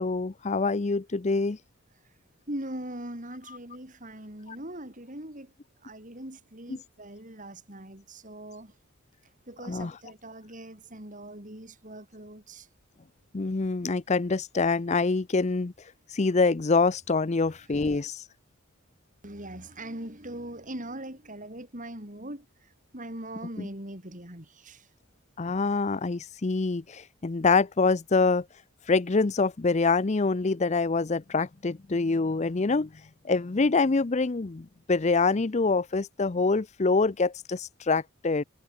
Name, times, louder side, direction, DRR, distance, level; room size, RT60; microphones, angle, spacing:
voice 1, 0.0-1.6 3.5-3.6 4.5-4.6 9.6-10.0 13.3-15.7 16.1-18.2 23.6-23.7 25.4-28.4 28.9-32.9 33.2-38.4, left 3 dB, 30° left, 0.5 m, -25 dB
voice 2, 2.5-5.5 5.8-8.7 9.5-12.7 19.2-22.5 22.9-24.8, right 1 dB, 35° right, 5.4 m, -41 dB
head